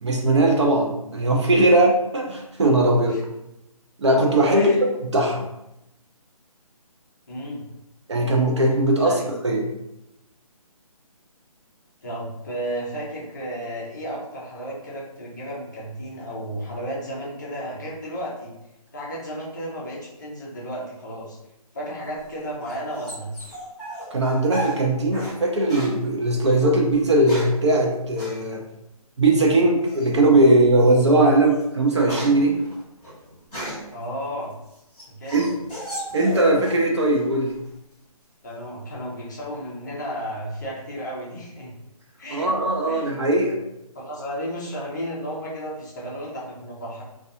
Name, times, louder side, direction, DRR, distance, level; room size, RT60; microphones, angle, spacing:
voice 1, 0.0-3.2 4.0-4.7 5.0-5.5 8.1-9.6 24.1-28.6 29.2-32.6 35.3-35.5 36.1-37.5 42.3-43.6, right 2 dB, 50° right, 0 dB, 0.5 m, -19 dB
voice 2, 2.9-3.2 4.5-4.8 7.3-7.6 9.0-9.3 12.0-18.5 18.9-21.4 21.7-23.3 33.9-34.5 35.1-35.4 38.4-41.7 42.2-42.5 42.9-43.2 43.9-47.0, equal, 30° left, -5 dB, 0.6 m, -33 dB
sound 1, 22.1-25.4 25.7-26.0 26.9-27.6 28.2-28.4 29.8-30.2 30.8-30.9 31.4-34.0 34.5-36.8 37.1-37.7, right 1 dB, 5° left, 1.2 m, -35 dB
2.4 x 2.3 x 2.6 m, 0.88 s
hypercardioid pair, 170°, 19 cm